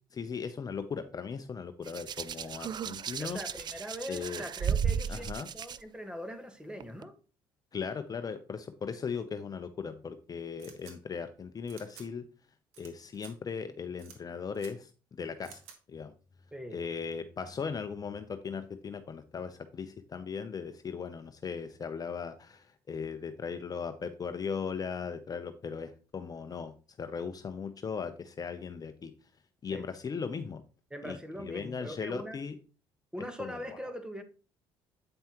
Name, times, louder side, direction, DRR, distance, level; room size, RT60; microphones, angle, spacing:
voice 1, 0.1-3.4 4.1-4.4 5.1-5.5 7.7-12.2 12.8-15.6 15.9-16.1 16.7-29.1 29.6-30.6 31.0-32.5 33.4-33.8, left 6 dB, 35° left, 9 dB, 0.7 m, -38 dB
Hands, 1.9-5.8 6.8-7.0, right 8 dB, 45° right, 0.4 m, -34 dB
voice 2, 3.2-7.1 16.5-16.8 29.7-29.9 30.9-32.4 33.1-34.2, equal, 10° right, 7 dB, 1.5 m, -41 dB
sound 1, 10.6-10.9 11.7-12.1 12.7-12.9 13.1-13.3 14.0-14.2 14.5-14.7 15.4-15.8, right 8 dB, 80° right, 1.4 m, -51 dB
8.8 x 5.4 x 3.0 m, 0.36 s
supercardioid pair, 70°, 11 cm